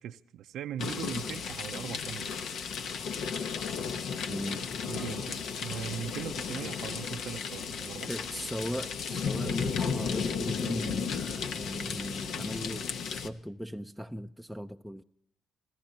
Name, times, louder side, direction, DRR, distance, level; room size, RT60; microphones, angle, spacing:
voice 1, 0.0-2.6 4.8-8.1, right 10 dB, 80° right, 0.5 m, -40 dB
sound 1, 0.8-13.3, left 6 dB, 75° left, 0.9 m, -34 dB
voice 2, 4.3-4.7 8.1-15.0, equal, ahead, 0.4 m, -38 dB
26.5 x 15.0 x 2.8 m
cardioid pair, 90°, 0 cm